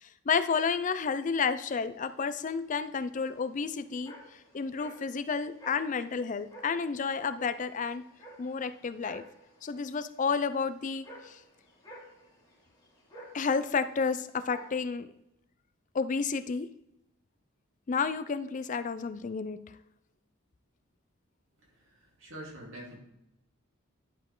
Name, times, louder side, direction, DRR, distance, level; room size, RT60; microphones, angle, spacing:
voice 1, 0.0-8.0 8.4-9.2 9.6-11.4 13.3-15.1 15.9-16.7 17.9-19.6, left 5 dB, 35° left, 13 dB, 0.4 m, -31 dB
sound 1, 1.9-14.8, equal, 20° left, 2.6 m, -53 dB
voice 2, 21.7-23.0, right 1 dB, 65° right, -3 dB, 3.1 m, -46 dB
11.0 x 5.1 x 3.8 m, 0.82 s
head